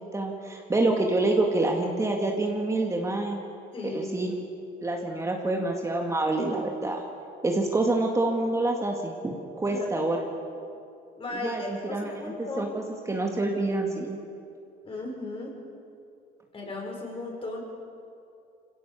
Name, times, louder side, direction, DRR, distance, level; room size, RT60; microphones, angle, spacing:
voice 1, 0.0-3.4 3.9-4.4 4.8-7.0 7.4-10.2 11.3-14.2, right 2 dB, 15° right, 1 dB, 2.0 m, -27 dB
voice 2, 3.7-4.1 9.7-10.1 11.2-12.8 14.8-15.5 16.5-17.6, left 2 dB, 35° left, 0 dB, 6.0 m, -36 dB
24.5 x 17.0 x 7.0 m, 2.5 s
cardioid pair, 110°, 17 cm